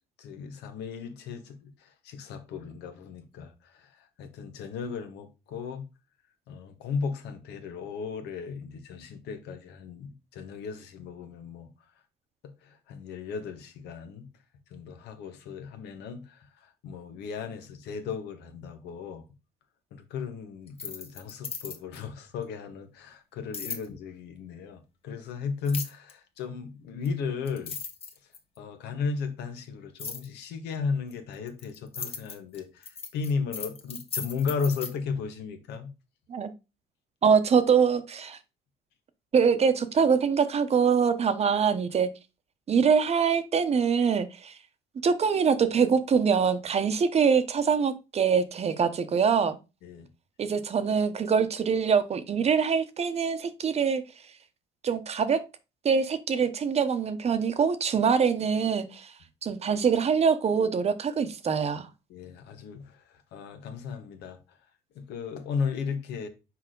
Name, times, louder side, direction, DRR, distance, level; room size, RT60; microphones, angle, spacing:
voice 1, 0.2-5.9 6.5-11.7 12.6-14.3 14.7-19.3 19.9-27.8 28.6-35.9 49.8-50.1 62.1-63.0 63.3-64.6 64.9-66.3, left 5 dB, 80° left, 1.5 m, -35 dB
sound 1, 20.7-22.0 23.5-23.9 25.7-26.1 27.1-27.2 27.5-28.6 30.0-30.3 31.1-34.9, left 5 dB, 35° left, 1.3 m, -37 dB
voice 2, 37.2-38.4 39.3-42.1 42.7-44.5 45.0-49.6 50.4-54.0 54.8-55.4 55.8-59.1 59.4-61.9, right 6 dB, 40° right, 0.9 m, -24 dB
5.9 x 4.8 x 3.8 m
cardioid pair, 110°, 17 cm